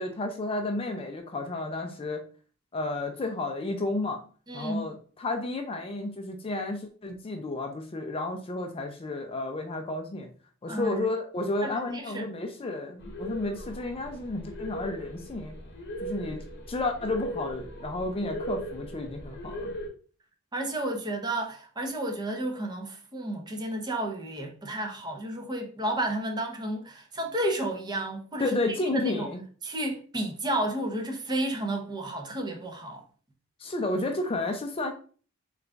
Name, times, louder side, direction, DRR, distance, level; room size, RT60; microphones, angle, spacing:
voice 1, 0.0-2.2 2.7-4.2 4.5-10.3 10.6-15.5 16.0-19.7 28.4-29.4 33.6-34.9, left 2 dB, 25° left, 0.4 m, -32 dB
voice 2, 4.5-4.9 10.7-11.0 11.6-12.3 20.5-28.5 28.9-29.3 29.6-33.0, right 1 dB, 20° right, 0.6 m, -32 dB
sound 1, 13.0-19.9, equal, 55° left, 0.9 m, -38 dB
3.8 x 2.4 x 3.3 m
head